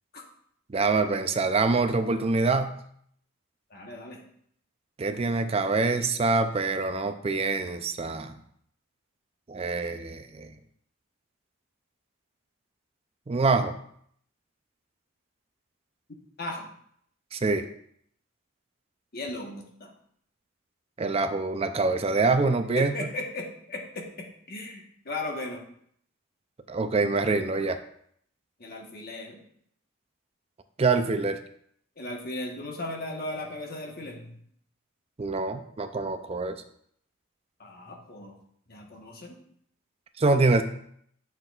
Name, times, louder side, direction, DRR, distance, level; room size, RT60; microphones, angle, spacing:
voice 1, 0.7-2.8 5.0-8.3 9.5-10.5 13.3-13.7 17.3-17.7 21.0-22.9 26.7-27.8 30.8-31.4 35.2-36.6 40.2-40.6, right 3 dB, 30° right, 8 dB, 0.4 m, -25 dB
voice 2, 3.7-4.2 16.4-16.7 19.1-19.9 22.8-25.6 28.6-29.4 32.0-34.4 37.6-38.4 38.7-39.4, left 2 dB, 45° left, 0 dB, 1.2 m, -37 dB
7.7 x 6.0 x 2.4 m, 0.67 s
head